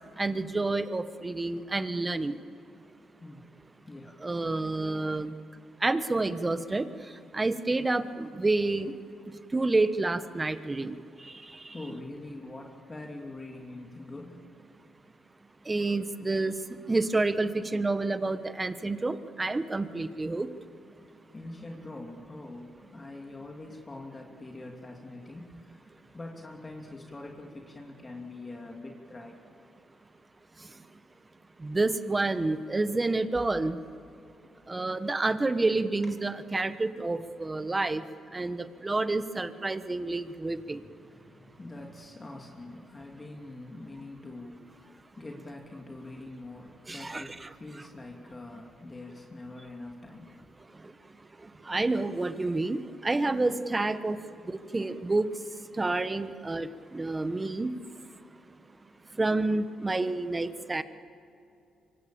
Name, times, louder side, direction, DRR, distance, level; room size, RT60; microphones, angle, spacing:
voice 1, 0.2-2.3 4.2-5.3 5.8-6.9 7.3-8.9 9.5-11.0 15.7-16.5 16.9-20.5 31.6-33.8 34.7-38.0 38.3-40.8 46.9-47.2 51.7-54.2 54.7-55.3 55.8-56.7 56.9-57.7 59.2-60.8, right 2 dB, 20° right, 11 dB, 1.3 m, -28 dB
voice 2, 3.2-3.5 3.9-4.2 11.7-14.4 21.3-29.4 36.0-36.1 40.4-50.4, left 2 dB, 25° left, 0 dB, 2.9 m, -44 dB
25.0 x 24.5 x 7.2 m, 2.6 s
cardioid pair, 85°, 0 cm